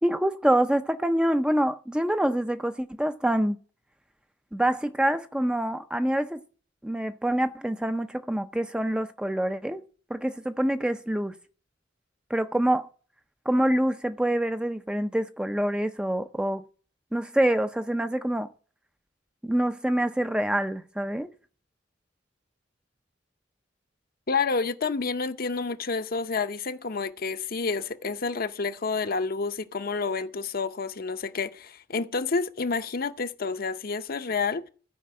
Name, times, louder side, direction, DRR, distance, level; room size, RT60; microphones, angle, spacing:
voice 1, 0.0-3.6 4.5-6.4 6.8-9.8 10.1-11.3 12.3-12.9 13.5-16.6 17.1-18.5 19.4-21.3, right 1 dB, 5° right, 0.5 m, -26 dB
voice 2, 24.3-34.6, left 4 dB, 50° left, 0.8 m, -29 dB
14.5 x 5.2 x 7.5 m
head